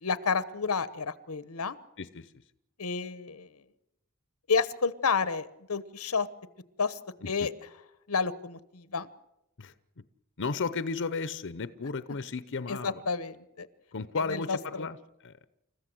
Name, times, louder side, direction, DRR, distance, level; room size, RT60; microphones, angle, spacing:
voice 1, 0.0-1.8 2.8-3.5 4.5-6.3 6.8-7.0 7.3-7.5 8.1-9.1 12.7-13.7 14.3-14.9, left 5 dB, 90° left, 15 dB, 1.1 m, -30 dB
voice 2, 10.4-13.0 13.9-14.9 15.2-15.3, left 4 dB, 60° left, 14 dB, 0.8 m, -33 dB
29.0 x 14.5 x 7.7 m, 0.87 s
head